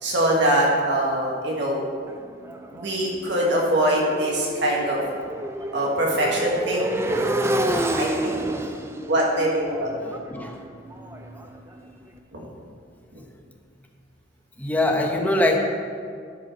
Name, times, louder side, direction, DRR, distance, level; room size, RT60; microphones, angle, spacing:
voice 1, 0.0-1.8 2.7-5.0 5.7-7.2 7.9-8.3 9.1-9.9 12.3-12.4 14.9-15.0, right 1 dB, 65° right, -3 dB, 1.5 m, -23 dB
Motorcycle, 2.1-11.9, right 1 dB, 15° right, 0.4 m, -30 dB
voice 2, 14.6-15.6, left 1 dB, 10° left, 1 dB, 0.9 m, -22 dB
12.0 x 5.4 x 4.4 m, 2.2 s
head